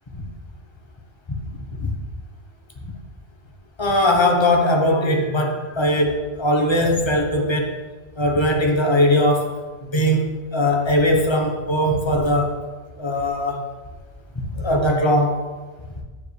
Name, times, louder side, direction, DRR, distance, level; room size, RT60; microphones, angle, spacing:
voice 1, 3.8-7.8 8.2-9.5 9.9-12.6 13.0-13.6 14.6-15.5, left 1 dB, 25° left, 1 dB, 1.0 m, -20 dB
9.3 x 7.4 x 3.3 m, 1.4 s
omnidirectional pair, 1.2 m